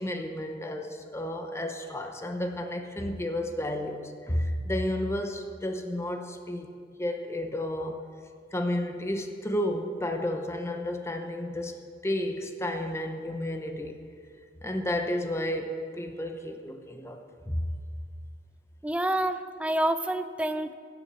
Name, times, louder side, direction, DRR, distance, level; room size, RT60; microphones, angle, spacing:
voice 1, 0.0-6.7 7.0-8.0 8.5-14.0 14.6-17.7, left 1 dB, 15° left, 5 dB, 0.8 m, -32 dB
voice 2, 18.8-20.7, right 1 dB, 5° right, 10 dB, 0.4 m, -28 dB
16.0 x 7.0 x 6.1 m, 2.1 s
head